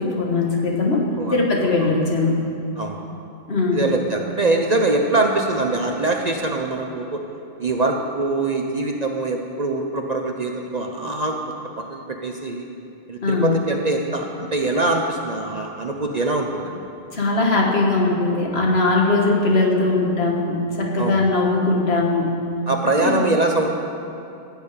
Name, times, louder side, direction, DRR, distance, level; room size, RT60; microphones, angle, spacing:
voice 1, 0.0-2.4 3.5-3.8 13.2-13.5 17.1-22.4 23.0-23.1, left 3 dB, 80° left, -1 dB, 2.0 m, -20 dB
voice 2, 2.8-3.1 3.7-7.2 7.6-12.7 13.1-16.8 21.0-21.3 22.7-23.7, right 2 dB, 45° right, 2 dB, 0.9 m, -23 dB
15.0 x 6.5 x 8.6 m, 2.7 s
omnidirectional pair, 1.1 m